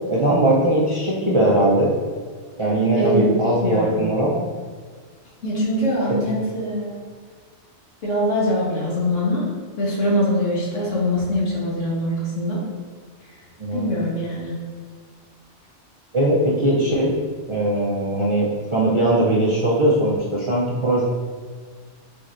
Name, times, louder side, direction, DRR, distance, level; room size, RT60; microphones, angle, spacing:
voice 1, 0.1-1.9 2.6-4.4 6.1-6.2 13.6-13.9 16.1-17.1 17.5-21.0, right 1 dB, 40° right, -6 dB, 0.4 m, -20 dB
voice 2, 2.9-4.0 5.4-7.0 8.0-9.4 9.8-12.6 13.7-14.5, equal, 85° left, -6 dB, 1.7 m, -23 dB
4.6 x 4.1 x 2.5 m, 1.6 s
omnidirectional pair, 1.2 m